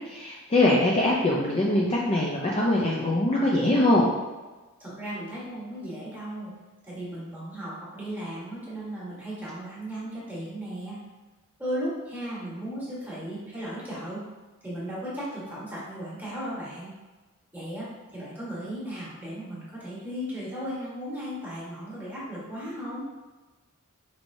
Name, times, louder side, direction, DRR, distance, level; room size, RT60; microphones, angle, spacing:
voice 1, 0.1-4.1, left 1 dB, 25° left, -4 dB, 0.4 m, -23 dB
voice 2, 4.8-6.5 6.8-11.0 11.6-14.2 14.6-16.9 17.5-23.0, equal, 10° right, -9 dB, 1.3 m, -36 dB
4.3 x 3.1 x 2.6 m, 1.2 s
head